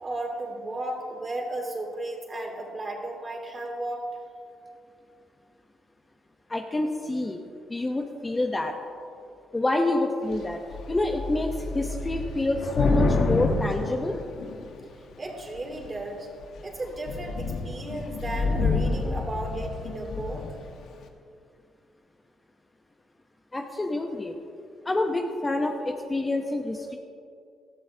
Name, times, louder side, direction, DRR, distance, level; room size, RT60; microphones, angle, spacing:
voice 1, 0.0-4.2 15.2-16.3 16.6-20.4, right 1 dB, 30° right, 0 dB, 2.9 m, -34 dB
voice 2, 6.5-7.4 7.7-8.7 9.5-10.6 10.9-14.2 23.5-24.4 24.8-27.0, left 2 dB, 20° left, 3 dB, 0.8 m, -27 dB
Thunder / Rain, 10.3-10.5 10.7-14.8 15.6-16.0 16.4-16.6 16.8-20.6, left 3 dB, 70° left, 1.2 m, -28 dB
18.0 x 13.0 x 2.8 m, 2.5 s
cardioid pair, 90°, 0 cm